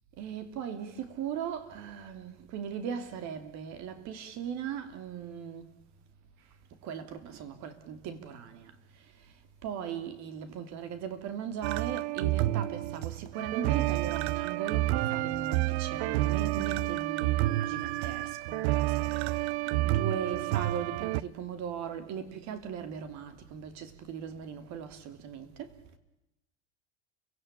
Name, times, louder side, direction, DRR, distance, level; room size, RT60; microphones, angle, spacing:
voice 1, 0.2-5.7 6.4-25.8, right 8 dB, 55° right, 3.0 m, -39 dB
sound 1, 11.6-21.2, right 17 dB, 70° right, 0.9 m, -29 dB
29.5 x 17.0 x 8.6 m
hypercardioid pair, 95°, 34 cm